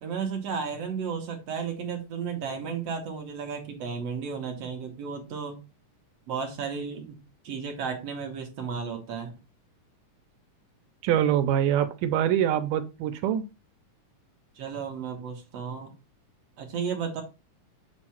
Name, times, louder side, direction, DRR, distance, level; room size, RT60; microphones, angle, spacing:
voice 1, 0.0-5.6 6.3-7.2 7.4-9.3 14.6-15.9 16.6-17.2, right 6 dB, 60° right, 3 dB, 1.8 m, -33 dB
voice 2, 11.0-13.4, right 10 dB, 85° right, 9 dB, 2.2 m, -24 dB
7.4 x 2.5 x 5.7 m, 0.29 s
omnidirectional pair, 3.7 m